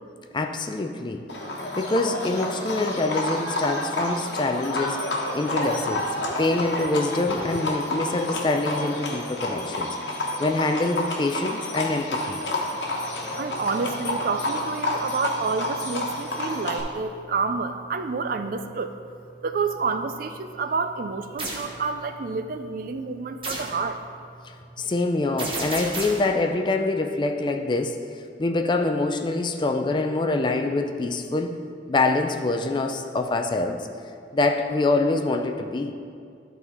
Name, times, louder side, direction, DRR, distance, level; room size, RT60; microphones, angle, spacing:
voice 1, 0.3-1.3 1.8-5.1 5.3-10.0 10.4-12.4 24.4-31.6 31.9-33.9 34.3-35.9, left 2 dB, 25° left, 5 dB, 0.3 m, -25 dB
Livestock farm animals working animals, 1.3-16.8, left 1 dB, 70° left, 1.2 m, -29 dB
voice 2, 13.4-18.9 19.4-24.0, right 4 dB, 50° right, 8 dB, 0.4 m, -29 dB
sound 1, 21.4-21.7 23.4-23.8 25.4-26.3, right 2 dB, 30° right, 1.1 m, -31 dB
11.5 x 4.1 x 4.3 m, 2.3 s
head